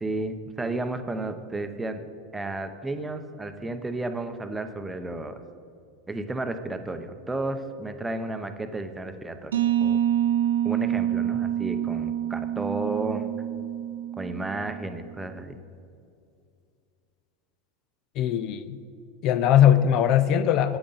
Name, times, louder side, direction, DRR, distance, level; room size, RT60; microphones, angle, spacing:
voice 1, 0.0-2.0 2.3-5.4 6.1-9.5 9.8-10.0 10.6-13.3 14.2-15.6, right 2 dB, 10° right, 8 dB, 0.6 m, -32 dB
sound 1, 9.5-15.1, right 11 dB, 85° right, 0.5 m, -27 dB
voice 2, 18.2-18.8 19.2-20.8, left 10 dB, 55° left, 13 dB, 0.4 m, -20 dB
8.4 x 7.8 x 3.9 m, 2.4 s
hypercardioid pair, 95°, 0 cm